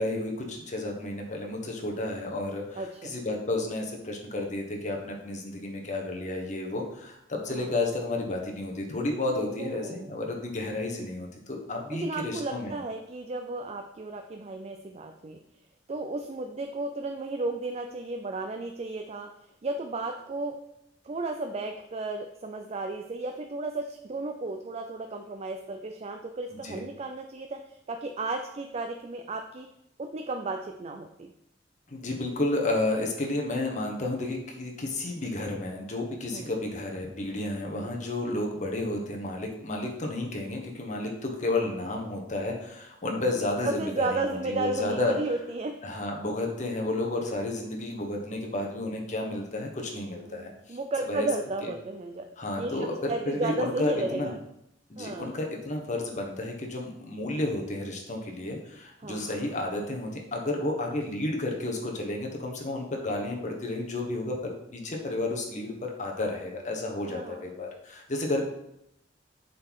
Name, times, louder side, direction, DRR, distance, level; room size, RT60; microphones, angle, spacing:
voice 1, 0.0-12.8 26.6-26.8 31.9-45.1 45.8-50.8 51.1-51.3 51.6-51.7 52.4-54.3 54.9-68.4, left 2 dB, 40° left, 0 dB, 1.3 m, -32 dB
voice 2, 2.8-3.1 7.5-7.7 9.3-10.2 11.9-15.4 15.9-19.3 19.6-20.6 21.0-29.7 30.0-31.3 36.3-36.5 37.7-38.0 43.0-43.2 43.6-45.8 50.2-52.3 52.5-54.4 55.0-55.4 59.0-59.5 67.1-67.4, right 2 dB, 35° right, 5 dB, 0.4 m, -34 dB
7.5 x 4.1 x 4.7 m, 0.81 s
head